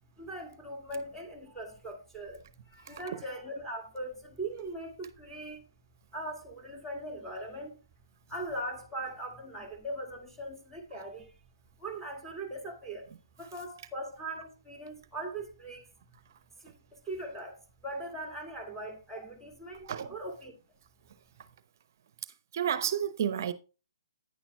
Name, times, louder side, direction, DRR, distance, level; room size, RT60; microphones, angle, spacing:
voice 1, 0.2-5.7 6.1-7.8 8.3-11.3 11.8-13.1 13.4-15.9 16.6-20.5, right 1 dB, ahead, 2.0 m, -40 dB
voice 2, 2.8-3.2 19.8-20.1 22.5-23.5, right 9 dB, 45° right, 0.7 m, -31 dB
9.9 x 9.5 x 2.3 m
figure-of-eight pair, 130°, 2 cm